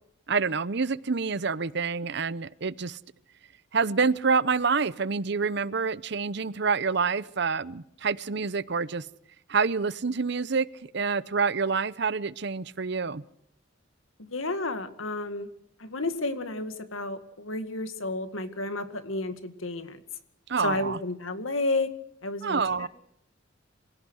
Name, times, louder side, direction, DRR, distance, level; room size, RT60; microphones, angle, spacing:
voice 1, 0.3-3.0 3.7-9.1 9.5-10.7 10.9-13.2 20.5-21.0 22.4-22.9, right 5 dB, 55° right, 19 dB, 0.7 m, -27 dB
voice 2, 14.3-15.5 15.8-20.0 20.6-21.9 22.2-22.9, left 2 dB, 90° left, 10 dB, 2.1 m, -31 dB
26.5 x 17.0 x 6.4 m, 0.75 s
head